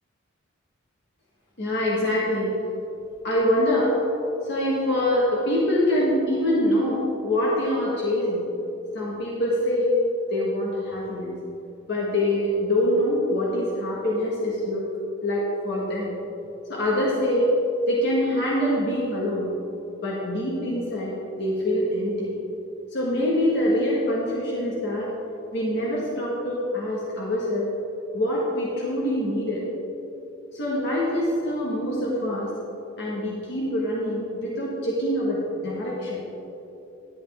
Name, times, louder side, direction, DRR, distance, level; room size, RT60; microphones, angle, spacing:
voice 1, 1.6-2.5 3.2-3.9 4.4-8.4 8.9-10.0 10.3-11.4 11.9-14.8 15.2-16.1 16.7-17.5 17.9-19.5 20.0-22.3 22.9-25.1 25.5-27.7 28.1-29.6 30.5-32.5 33.0-36.2, left 1 dB, 55° left, -6 dB, 1.6 m, -24 dB
11.0 x 8.6 x 3.6 m, 2.8 s
head